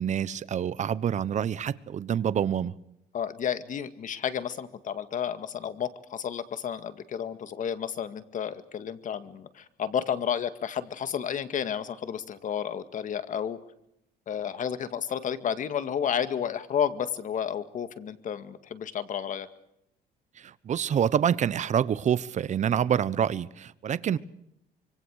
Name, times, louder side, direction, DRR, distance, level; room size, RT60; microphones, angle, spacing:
voice 1, 0.0-2.7 20.4-24.2, right 9 dB, 45° right, 17 dB, 1.1 m, -27 dB
voice 2, 3.1-13.6 14.3-19.5 24.1-24.2, left 8 dB, 50° left, 11 dB, 2.1 m, -31 dB
25.5 x 24.0 x 6.6 m, 0.80 s
cardioid pair, 110°, 17 cm